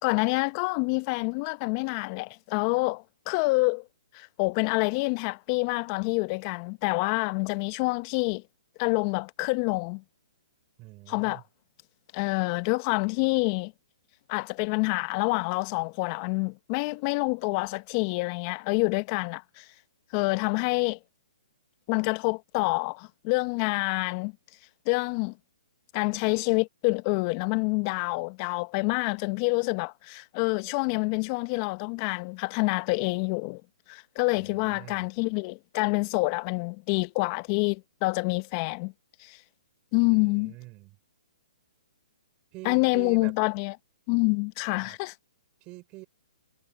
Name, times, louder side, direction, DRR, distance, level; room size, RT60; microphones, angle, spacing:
voice 1, 0.0-3.8 4.1-8.4 8.8-10.0 11.1-11.4 12.1-13.7 14.3-19.6 20.1-21.0 21.9-24.3 24.8-25.3 25.9-33.6 33.9-38.9 39.2-39.4 39.9-40.5 42.6-43.8 44.1-45.1, left 29 dB, 35° left, 1.5 m, -27 dB
voice 2, 10.8-11.4 34.4-35.1 40.0-41.0 42.5-43.3 44.8-45.0 45.6-46.1, right 23 dB, 30° right, 6.6 m, -45 dB
hypercardioid pair, 135°, 4 cm